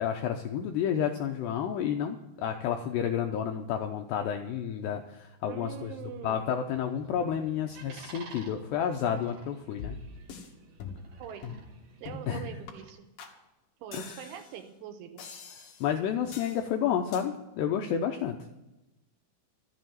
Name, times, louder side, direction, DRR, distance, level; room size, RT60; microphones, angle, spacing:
voice 1, 0.0-5.9 6.2-10.0 12.3-12.5 13.9-14.2 15.8-18.4, left 8 dB, 90° left, 4 dB, 2.4 m, -30 dB
voice 2, 5.5-6.4 11.2-11.5 12.0-13.0 13.8-15.2, right 9 dB, 80° right, 7 dB, 3.4 m, -43 dB
sound 1, 6.6-12.9, right 3 dB, 50° right, 3.3 m, -53 dB
sound 2, 9.8-10.5 10.8-11.2 11.4-11.7 12.1-12.3 12.7-12.8 13.2-13.3 13.9-14.6 15.2-15.9 16.3-16.6 17.1-17.2, left 6 dB, 60° left, 2.6 m, -43 dB
13.5 x 7.0 x 9.2 m, 0.98 s
omnidirectional pair, 5.7 m